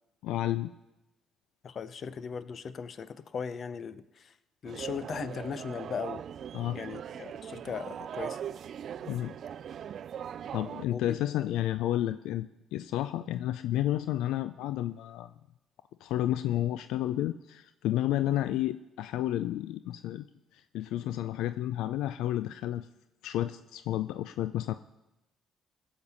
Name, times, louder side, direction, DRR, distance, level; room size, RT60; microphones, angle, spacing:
voice 1, 0.2-0.7 6.5-6.8 9.0-9.3 10.5-15.3 16.0-20.3 20.5-22.9 23.2-24.7, left 13 dB, 80° left, 12 dB, 0.3 m, -31 dB
voice 2, 1.6-4.3 4.6-6.2 6.7-8.4 10.9-11.2, left 6 dB, 50° left, 14 dB, 0.7 m, -38 dB
sound 1, 4.7-10.9, right 9 dB, 60° right, 0.3 m, -40 dB
17.0 x 7.2 x 5.4 m, 0.97 s
supercardioid pair, 75°, 0 cm